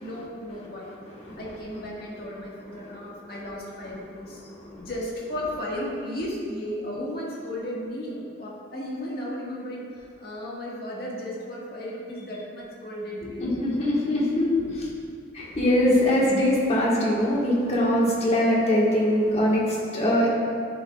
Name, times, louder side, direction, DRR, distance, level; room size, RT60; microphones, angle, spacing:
voice 1, 0.0-0.9 1.4-4.4 4.8-13.6, left 1 dB, 55° left, -5 dB, 1.8 m, -35 dB
voice 2, 1.1-1.4 13.2-14.7 15.3-19.6 19.9-20.3, left 1 dB, 35° left, -4 dB, 1.5 m, -22 dB
11.5 x 7.5 x 2.4 m, 2.2 s
head